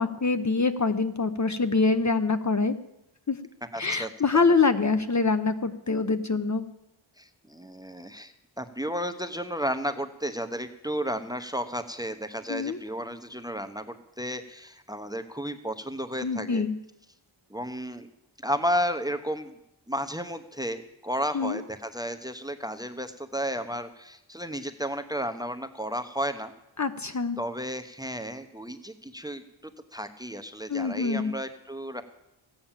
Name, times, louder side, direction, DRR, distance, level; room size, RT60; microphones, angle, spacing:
voice 1, 0.0-2.7 3.3-3.4 3.8-6.6 12.5-12.8 16.2-16.8 21.3-21.6 26.8-27.4 30.7-31.3, left 4 dB, 35° left, 9 dB, 0.9 m, -25 dB
voice 2, 3.7-4.1 7.2-16.6 17.5-18.1 18.4-19.5 19.9-26.5 27.4-32.0, equal, 10° right, 9 dB, 0.9 m, -33 dB
15.0 x 8.8 x 7.3 m, 0.87 s
wide cardioid pair, 90°, 48 cm